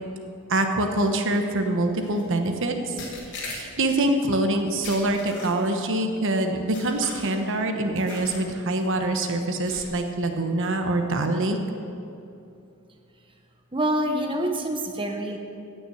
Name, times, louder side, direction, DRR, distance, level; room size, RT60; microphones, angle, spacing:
voice 1, 0.5-2.9 3.4-11.6, right 2 dB, 60° right, 5 dB, 1.1 m, -25 dB
sound 1, 2.0-2.2 3.0-4.0 4.8-5.8 6.7-7.5 8.1-8.5 8.8-9.0 9.7-10.1, left 3 dB, 55° left, 3.1 m, -40 dB
voice 2, 13.7-15.4, right 1 dB, 25° right, 3 dB, 1.0 m, -26 dB
16.0 x 6.0 x 7.9 m, 2.6 s
head